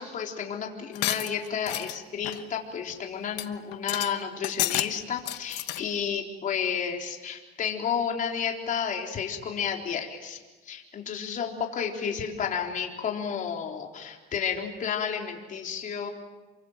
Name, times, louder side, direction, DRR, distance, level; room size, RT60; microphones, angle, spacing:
voice 1, 0.0-10.4 10.7-16.1, left 7 dB, 50° left, 1 dB, 4.0 m, -31 dB
sound 1, 1.0-2.0 2.2-2.5 2.9-3.0 3.4-3.5 3.7-4.1 4.4-4.9 5.2-5.8, left 15 dB, 85° left, 1.2 m, -30 dB
29.0 x 24.0 x 7.5 m, 1.2 s
cardioid pair, 110°, 17 cm